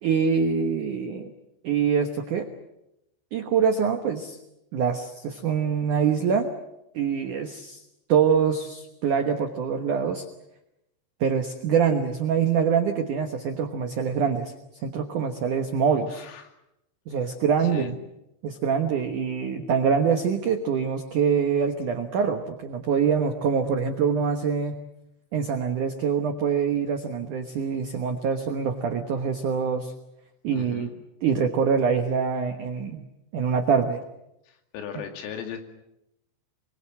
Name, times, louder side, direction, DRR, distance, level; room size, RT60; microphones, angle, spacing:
voice 1, 0.0-1.3 1.6-2.5 3.3-4.4 4.7-6.5 6.9-7.8 8.1-10.2 11.2-14.5 14.8-16.2 17.1-17.9 18.4-24.8 25.3-29.9 30.4-30.9 31.2-33.1 33.3-34.0, right 6 dB, 85° right, 5 dB, 1.7 m, -24 dB
voice 2, 16.1-16.5 17.7-17.9 30.5-31.0 34.5-35.6, left 8 dB, 85° left, 5 dB, 4.9 m, -37 dB
24.5 x 23.5 x 7.7 m, 0.88 s
omnidirectional pair, 5.7 m